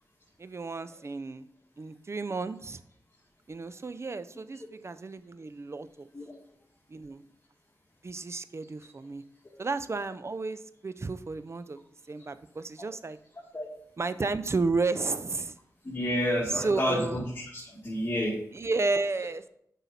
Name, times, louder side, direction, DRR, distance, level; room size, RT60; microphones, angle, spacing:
voice 1, 0.4-1.5 1.8-2.8 3.5-6.1 6.9-7.2 8.0-9.2 9.6-11.8 12.1-13.2 14.0-15.5 16.5-17.2 18.5-19.5, right 3 dB, 45° right, 13 dB, 0.5 m, -32 dB
voice 2, 15.8-17.2 17.5-18.4, equal, 30° left, -5 dB, 2.0 m, -29 dB
7.1 x 5.5 x 4.2 m, 0.70 s
cardioid pair, 50°, 7 cm